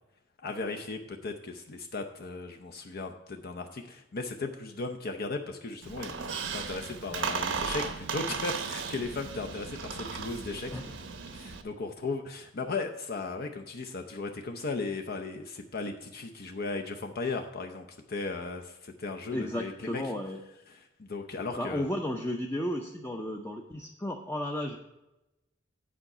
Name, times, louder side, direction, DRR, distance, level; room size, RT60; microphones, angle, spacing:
voice 1, 0.4-10.7 11.3-20.0 20.7-21.9, left 3 dB, 50° left, 4 dB, 0.6 m, -36 dB
Squeak, 5.8-11.6, right 5 dB, 70° right, 0.8 m, -36 dB
voice 2, 19.3-20.4 21.6-24.8, left 1 dB, 10° left, 1 dB, 0.6 m, -33 dB
8.6 x 4.9 x 6.5 m, 0.96 s
head